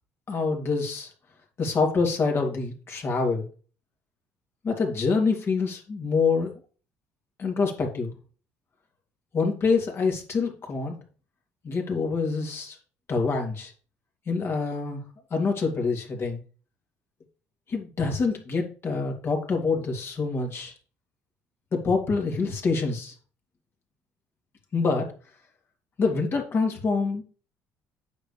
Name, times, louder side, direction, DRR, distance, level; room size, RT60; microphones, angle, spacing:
voice 1, 0.3-1.1 1.6-3.5 4.6-6.6 7.4-8.1 9.3-10.9 11.6-12.8 13.1-13.7 14.3-15.0 15.3-16.4 17.7-20.7 21.7-23.1 24.7-25.1 26.0-27.2, left 4 dB, 45° left, 1 dB, 2.9 m, -26 dB
8.8 x 6.7 x 3.3 m, 0.38 s
supercardioid pair, 80°, 6 cm